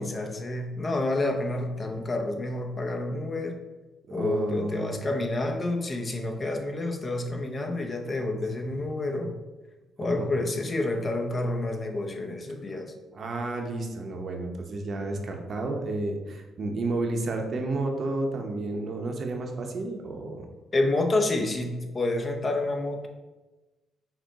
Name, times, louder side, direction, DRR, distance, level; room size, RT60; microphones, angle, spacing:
voice 1, 0.0-3.6 4.1-9.4 10.0-12.9 20.7-23.1, left 2 dB, 35° left, 4 dB, 0.6 m, -29 dB
voice 2, 4.1-5.0 10.2-10.3 13.1-20.5, right 2 dB, 50° right, 3 dB, 0.7 m, -31 dB
5.9 x 2.1 x 4.0 m, 1.2 s
cardioid pair, 90°, 0 cm